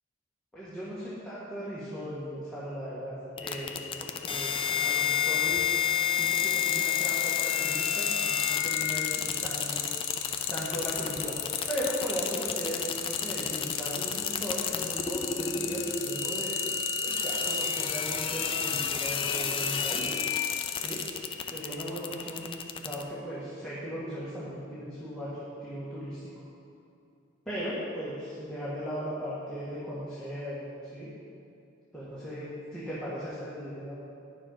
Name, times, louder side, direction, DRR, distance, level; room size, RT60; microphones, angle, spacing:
voice 1, 0.5-4.5 4.8-5.7 6.1-10.1 10.5-11.4 11.7-16.7 17.0-20.2 20.7-21.0 21.4-25.3 25.6-26.3 27.5-30.6 30.9-31.1 31.9-33.9, equal, 5° left, -10 dB, 1.8 m, -37 dB
sound 1, 3.4-23.0, left 7 dB, 25° left, 0.5 m, -31 dB
sound 2, 5.5-5.9 6.2-21.1, left 10 dB, 75° left, 0.9 m, -33 dB
10.5 x 6.8 x 5.6 m, 2.7 s
head